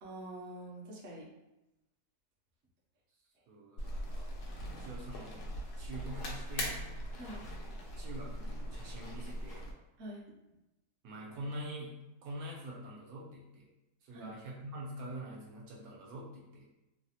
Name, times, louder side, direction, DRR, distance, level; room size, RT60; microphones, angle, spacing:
voice 1, 0.0-1.3 7.2-7.4 10.0-10.3 14.1-14.4, right 1 dB, 60° right, -3 dB, 0.8 m, -45 dB
voice 2, 3.5-4.3 4.7-5.4 5.8-6.8 8.0-9.7 11.0-13.7 14.0-16.7, right 1 dB, 75° right, -3 dB, 1.1 m, -45 dB
sound 1, 3.8-9.7, equal, 85° left, 1.2 m, -40 dB
3.2 x 2.1 x 2.7 m, 0.95 s
omnidirectional pair, 1.6 m